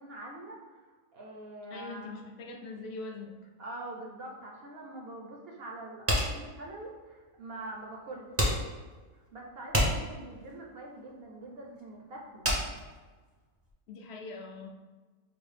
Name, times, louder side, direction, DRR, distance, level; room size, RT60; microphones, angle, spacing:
voice 1, 0.0-2.2 3.6-8.4 9.1-12.5, right 2 dB, 60° right, -1 dB, 0.6 m, -44 dB
voice 2, 1.7-3.5 13.9-14.7, left 3 dB, 65° left, 2 dB, 0.7 m, -42 dB
sound 1, 6.1-13.7, equal, 25° right, 0.3 m, -31 dB
4.9 x 2.0 x 3.2 m, 1.3 s
omnidirectional pair, 1.4 m